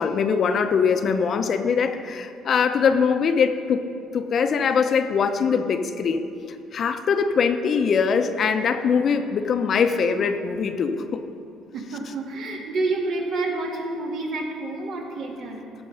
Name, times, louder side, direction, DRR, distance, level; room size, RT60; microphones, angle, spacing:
voice 1, 0.0-3.8 4.1-6.3 6.7-11.2, left 6 dB, 45° left, 8 dB, 0.7 m, -22 dB
voice 2, 11.7-15.6, right 2 dB, 65° right, 0 dB, 1.9 m, -28 dB
14.5 x 6.2 x 5.5 m, 2.5 s
cardioid pair, 110°, 0 cm